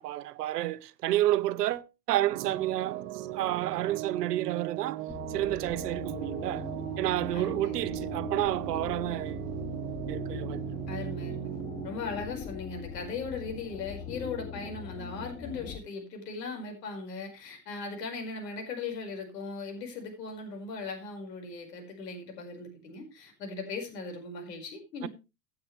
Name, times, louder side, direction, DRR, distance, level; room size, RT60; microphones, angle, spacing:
voice 1, 0.0-5.0 5.3-6.7 7.0-9.4 10.1-10.6 25.0-25.1, right 14 dB, 70° right, 0.9 m, -30 dB
sound 1, 2.3-11.9, right 15 dB, 55° right, 1.6 m, -37 dB
sound 2, 5.1-15.8, left 7 dB, 15° left, 0.9 m, -41 dB
voice 2, 7.3-8.0 10.9-11.5 11.8-25.1, left 4 dB, 75° left, 5.2 m, -38 dB
16.5 x 8.6 x 3.2 m
hypercardioid pair, 105°, 50 cm